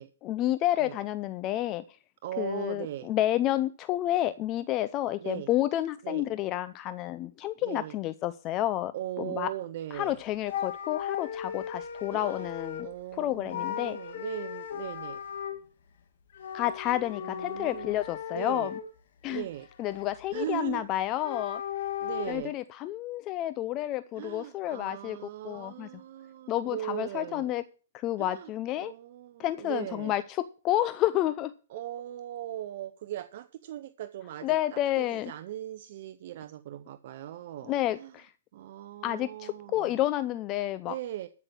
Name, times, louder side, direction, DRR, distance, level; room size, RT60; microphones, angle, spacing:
voice 1, 0.2-1.8 2.4-8.9 9.2-9.5 9.9-12.9 13.2-14.0 16.5-18.7 19.2-19.4 19.8-21.6 22.3-25.2 25.4-25.9 26.5-27.6 27.9-28.9 29.4-31.5 34.4-35.3 37.7-38.3 39.0-40.9, left 14 dB, 30° left, 14 dB, 0.5 m, -30 dB
voice 2, 2.2-3.1 5.2-5.5 6.0-6.2 7.6-8.0 8.9-10.2 12.1-12.5 12.8-15.2 17.2-17.9 18.3-18.7 19.3-19.7 20.3-20.8 22.0-22.5 24.1-27.5 28.2-28.5 28.8-30.2 31.7-38.1 38.5-40.0 40.8-41.3, right 12 dB, 55° right, 11 dB, 0.7 m, -39 dB
sound 1, 10.0-10.1 10.5-13.0 13.5-15.6 16.3-18.9 19.4-20.3 21.0-22.3, left 9 dB, 60° left, 2.3 m, -37 dB
13.0 x 6.0 x 7.5 m, 0.38 s
hypercardioid pair, 140°, 0 cm